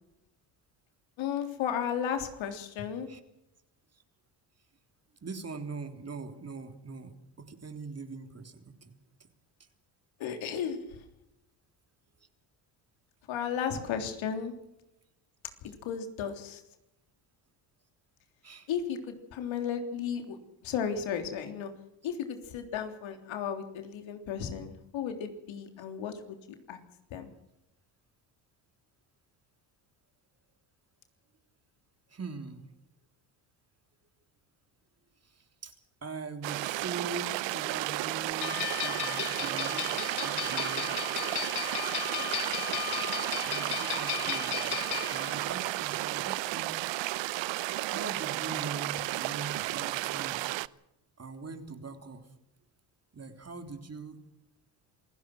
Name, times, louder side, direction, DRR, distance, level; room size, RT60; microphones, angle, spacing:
voice 1, 1.2-3.1 10.2-10.8 13.3-14.5 15.6-16.6 18.7-20.4 20.6-21.7 22.0-26.4 26.7-26.8 27.1-27.3 42.2-42.7, left 8 dB, 70° left, 6 dB, 3.6 m, -34 dB
voice 2, 5.2-9.3 14.0-14.1 18.4-18.7 32.1-32.7 35.2-35.8 36.0-39.9 40.2-41.0 43.4-44.8 45.1-46.8 47.8-50.4 51.2-52.3 53.1-54.2, right 4 dB, 30° right, 7 dB, 3.4 m, -42 dB
sound 1, 36.4-50.7, right 18 dB, 65° right, 0.8 m, -33 dB
sound 2, 38.4-45.5, left 15 dB, 55° left, 0.8 m, -35 dB
27.0 x 16.5 x 6.1 m, 0.85 s
supercardioid pair, 75°, 48 cm